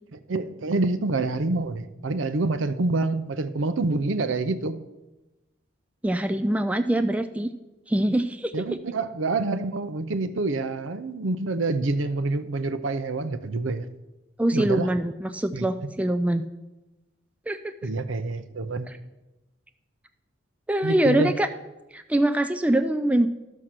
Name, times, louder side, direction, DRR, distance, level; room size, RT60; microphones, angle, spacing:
voice 1, 0.3-4.8 8.5-13.9 14.5-14.9 15.5-15.9 17.8-18.9 20.8-21.3, right 3 dB, 70° right, 12 dB, 0.6 m, -27 dB
voice 2, 6.0-7.5 7.9-8.6 14.4-16.4 17.5-17.7 18.9-19.0 20.7-21.5 21.9-23.3, right 1 dB, 5° right, 8 dB, 0.3 m, -24 dB
12.5 x 6.4 x 5.9 m, 1.1 s
head